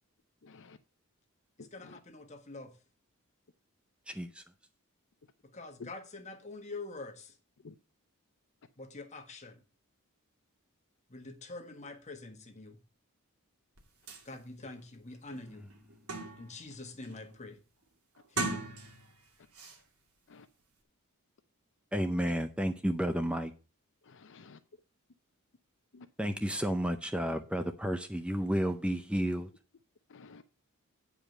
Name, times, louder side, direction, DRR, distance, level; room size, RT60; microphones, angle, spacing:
voice 1, 0.4-0.8 1.6-2.0 5.8-5.9 7.6-7.7 20.3-20.5 24.1-24.6 25.9-26.1 30.1-30.4, left 4 dB, 60° left, 0.6 m, -51 dB
voice 2, 1.6-2.7 5.5-7.3 8.8-9.6 11.1-12.8 14.2-15.6 16.4-17.6 18.3-18.7, left 3 dB, 30° left, 1.5 m, -45 dB
voice 3, 4.1-4.4 21.9-23.5 26.2-29.5, equal, 5° right, 0.5 m, -31 dB
sound 1, 13.8-13.9 14.1-14.2 14.8-14.9 15.3-16.6 17.0-17.4 18.2-19.2 19.5-19.8, right 3 dB, 75° right, 2.4 m, -38 dB
9.1 x 5.0 x 6.5 m
head